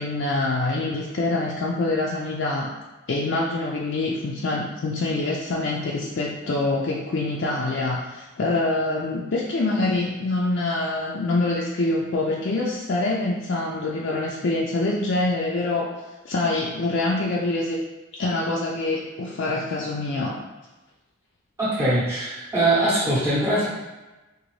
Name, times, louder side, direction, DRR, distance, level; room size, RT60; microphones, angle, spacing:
voice 1, 0.0-2.7 3.1-15.9 16.2-17.8 18.1-20.4, left 2 dB, 55° left, -3 dB, 0.4 m, -25 dB
voice 2, 21.6-23.7, right 1 dB, 15° right, -9 dB, 0.8 m, -22 dB
3.9 x 2.6 x 3.1 m, 1.1 s
head